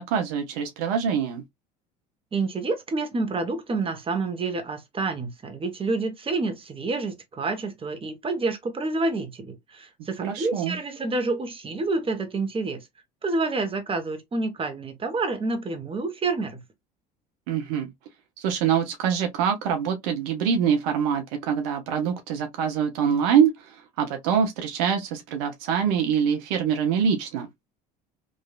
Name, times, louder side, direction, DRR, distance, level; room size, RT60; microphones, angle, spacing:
voice 1, 0.0-1.4 10.2-10.8 17.5-17.9 18.4-27.5, right 7 dB, 70° right, 0.8 m, -24 dB
voice 2, 2.3-12.9 13.2-16.6, right 3 dB, 25° right, 1.1 m, -28 dB
3.1 x 2.6 x 2.4 m
hypercardioid pair, 70°, 20 cm